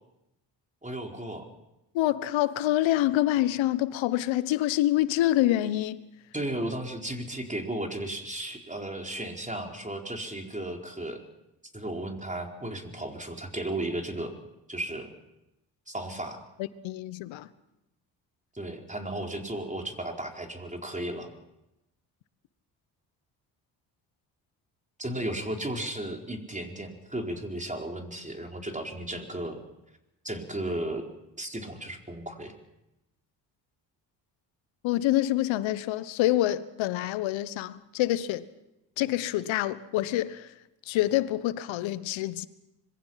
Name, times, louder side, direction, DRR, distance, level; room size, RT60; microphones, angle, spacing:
voice 1, 0.8-1.5 6.3-11.2 11.7-14.3 14.7-15.1 15.9-16.4 18.5-21.3 25.0-29.6 30.2-31.1 31.4-32.5, right 1 dB, 15° right, 4.8 m, -34 dB
voice 2, 1.9-6.0 16.8-17.5 34.8-38.4 39.0-40.5 40.9-42.5, left 14 dB, 70° left, 1.2 m, -26 dB
25.5 x 22.5 x 5.8 m
hypercardioid pair, 50°, 47 cm